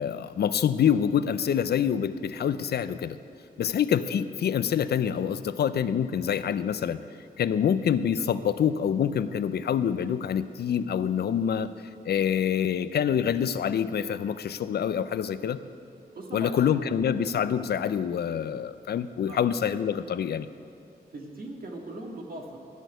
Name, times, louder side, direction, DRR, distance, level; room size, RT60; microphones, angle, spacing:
voice 1, 0.0-3.2 3.6-7.0 7.4-11.7 12.0-15.6 16.3-20.5, left 8 dB, 90° left, 13 dB, 0.5 m, -26 dB
voice 2, 16.1-16.8 19.3-19.4 21.1-22.6, right 1 dB, 65° right, 0 dB, 1.9 m, -40 dB
14.0 x 6.3 x 9.1 m, 2.5 s
wide cardioid pair, 110°, 16 cm